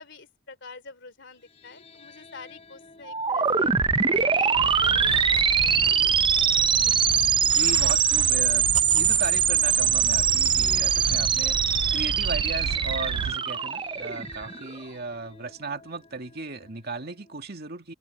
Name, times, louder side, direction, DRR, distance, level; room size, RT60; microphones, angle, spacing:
voice 1, 0.0-3.7 4.1-6.4 6.8-6.9, left 3 dB, 65° left, 3.2 m, -47 dB
sound 1, 1.3-17.4, left 3 dB, 30° left, 4.0 m, -52 dB
sound 2, 3.1-14.7, right 7 dB, 25° right, 0.5 m, -23 dB
sound 3, 4.5-13.4, right 7 dB, 90° right, 0.3 m, -34 dB
voice 2, 7.4-11.6 11.9-17.9, right 3 dB, 55° right, 2.2 m, -36 dB
head